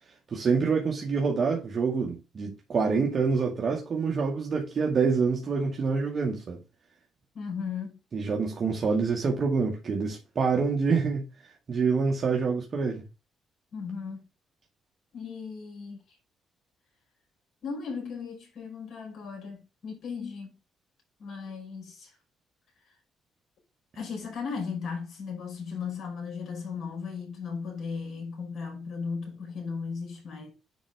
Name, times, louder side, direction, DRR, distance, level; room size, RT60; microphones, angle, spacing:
voice 1, 0.3-6.6 8.1-13.0, right 5 dB, 50° right, 1.9 m, -26 dB
voice 2, 7.3-8.0 13.7-14.3 15.1-16.2 17.6-20.5 21.2-22.2 23.9-30.5, left 5 dB, 65° left, 5.1 m, -36 dB
10.0 x 4.3 x 3.4 m
supercardioid pair, 65°, 0 cm